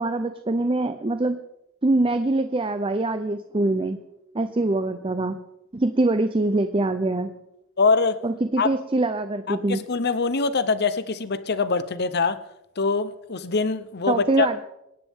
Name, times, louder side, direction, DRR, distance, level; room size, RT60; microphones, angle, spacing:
voice 1, 0.0-1.4 1.8-4.0 4.3-5.4 5.7-7.3 8.2-9.8 14.1-14.6, right 2 dB, 25° right, 10 dB, 0.6 m, -23 dB
voice 2, 7.8-8.2 8.6-8.7 9.5-12.4 12.8-14.5, left 4 dB, 45° left, 13 dB, 0.8 m, -23 dB
24.5 x 10.5 x 3.6 m, 0.88 s
head